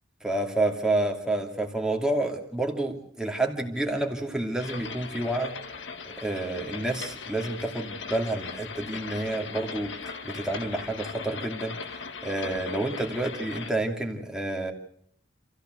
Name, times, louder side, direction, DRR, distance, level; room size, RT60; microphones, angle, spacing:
voice 1, 0.2-5.6 6.0-11.8 12.2-14.7, right 2 dB, 5° right, 2 dB, 2.6 m, -29 dB
sound 1, 4.6-13.7, left 5 dB, 75° left, 1.7 m, -39 dB
27.5 x 15.0 x 8.0 m, 0.68 s
head